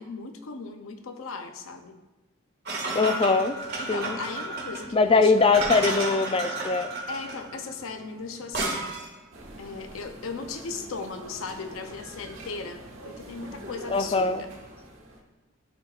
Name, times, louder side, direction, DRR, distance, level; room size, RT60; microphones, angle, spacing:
voice 1, 0.0-1.9 2.9-3.3 3.8-5.3 7.1-8.9 9.6-14.5, left 4 dB, 90° left, 6 dB, 0.6 m, -37 dB
sound 1, 2.6-9.2, right 2 dB, 50° right, 1.8 m, -32 dB
voice 2, 2.9-3.6 3.9-4.2 4.9-6.9 13.9-14.4, left 4 dB, 25° left, 9 dB, 0.3 m, -22 dB
sound 2, 9.3-15.2, right 1 dB, 75° right, 1.3 m, -44 dB
12.5 x 4.4 x 2.4 m, 1.1 s
head